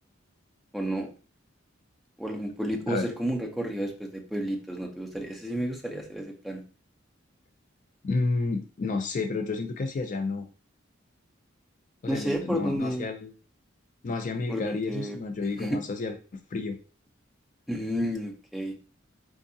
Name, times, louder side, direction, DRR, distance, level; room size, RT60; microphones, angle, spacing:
voice 1, 0.7-1.1 2.2-6.6 12.1-13.1 14.5-15.2 15.6-15.8 17.7-18.8, equal, ahead, 0 dB, 0.6 m, -31 dB
voice 2, 8.0-10.5 12.0-13.3 14.0-16.8, left 3 dB, 40° left, 5 dB, 0.4 m, -30 dB
4.6 x 2.6 x 2.6 m, 0.36 s
head